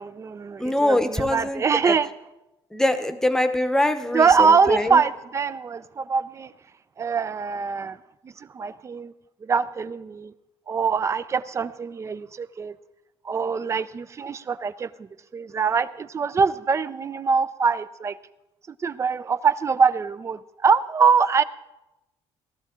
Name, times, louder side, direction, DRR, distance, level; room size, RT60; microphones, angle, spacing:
voice 1, 0.0-2.1 4.1-6.5 7.0-8.0 8.2-9.1 9.4-10.3 10.7-12.7 13.2-18.2 18.7-21.4, right 5 dB, 30° right, 15 dB, 0.5 m, -23 dB
voice 2, 0.6-2.0 2.7-5.0, left 1 dB, 5° left, 8 dB, 0.9 m, -23 dB
18.5 x 13.5 x 3.7 m, 0.94 s
cardioid pair, 140°, 10 cm